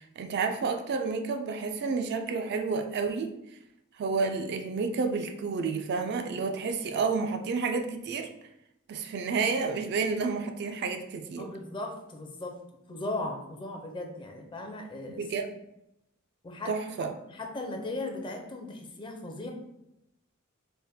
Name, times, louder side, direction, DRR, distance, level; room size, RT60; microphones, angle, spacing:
voice 1, 0.0-3.3 4.0-8.3 8.9-11.5 15.2-15.5 16.7-17.1, right 4 dB, 55° right, 5 dB, 0.3 m, -30 dB
voice 2, 11.4-12.6 12.9-15.3 16.4-19.5, left 2 dB, 25° left, 3 dB, 0.5 m, -37 dB
3.3 x 2.1 x 4.2 m, 0.86 s
head